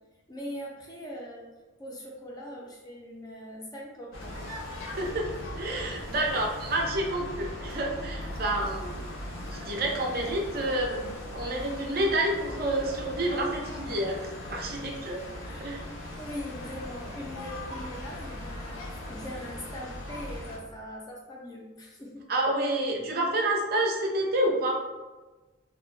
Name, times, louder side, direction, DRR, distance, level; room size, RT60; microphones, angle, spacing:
voice 1, 0.3-1.5 1.8-4.4 15.4-15.7 16.2-22.3, equal, 20° left, -2 dB, 0.3 m, -41 dB
sound 1, 4.1-20.6, left 1 dB, 85° left, 0.5 m, -39 dB
voice 2, 5.0-5.3 5.6-9.0 9.5-14.2 14.5-15.2 15.6-15.8 22.3-24.7, right 1 dB, 50° right, 0 dB, 0.4 m, -29 dB
2.4 x 2.0 x 3.1 m, 1.2 s
head